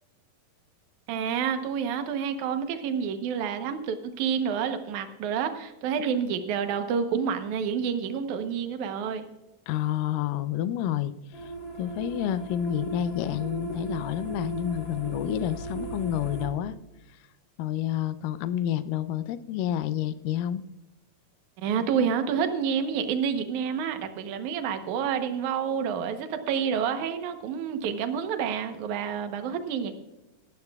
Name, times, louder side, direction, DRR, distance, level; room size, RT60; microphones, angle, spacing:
voice 1, 1.1-9.3 21.6-29.9, right 7 dB, 70° right, 8 dB, 1.9 m, -29 dB
voice 2, 9.7-11.5 11.8-16.7 17.6-20.6, left 11 dB, 85° left, 12 dB, 1.9 m, -29 dB
sound 1, 11.3-16.5, right 2 dB, 30° left, 3.8 m, -37 dB
26.0 x 12.0 x 2.4 m, 0.99 s
omnidirectional pair, 4.6 m